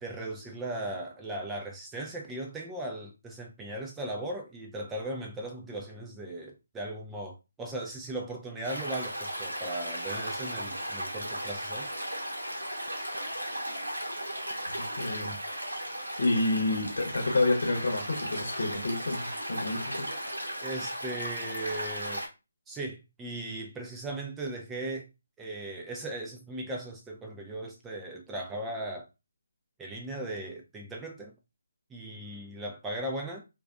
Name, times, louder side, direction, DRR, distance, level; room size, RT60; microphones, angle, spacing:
voice 1, 0.0-11.9 20.6-22.2 22.7-25.1 25.4-29.1 29.8-31.3 31.9-33.4, right 1 dB, 10° right, 0.4 m, -38 dB
Stream, 8.6-22.3, equal, 80° right, 0.9 m, -36 dB
voice 2, 14.9-15.4 16.2-20.1, left 2 dB, 65° left, 0.9 m, -29 dB
2.4 x 2.2 x 2.3 m
figure-of-eight pair, 145°, 0 cm